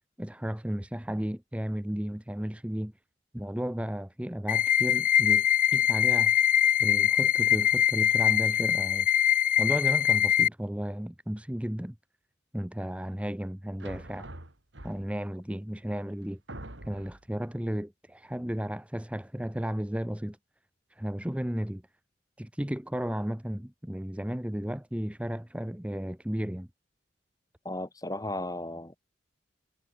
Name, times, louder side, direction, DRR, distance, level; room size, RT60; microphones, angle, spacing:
voice 1, 0.2-2.9 3.3-5.5 5.7-6.3 6.8-9.1 9.6-12.0 12.5-14.3 14.8-16.4 16.8-20.4 20.9-21.8 22.4-26.7, equal, 5° right, 0.8 m, -34 dB
sound 1, 4.5-10.5, left 10 dB, 45° left, 1.2 m, -23 dB
sound 2, 13.8-15.3 16.0-16.1 16.5-17.3, right 1 dB, 80° right, 4.2 m, -44 dB
voice 2, 27.6-29.0, left 1 dB, 20° left, 2.3 m, -35 dB
head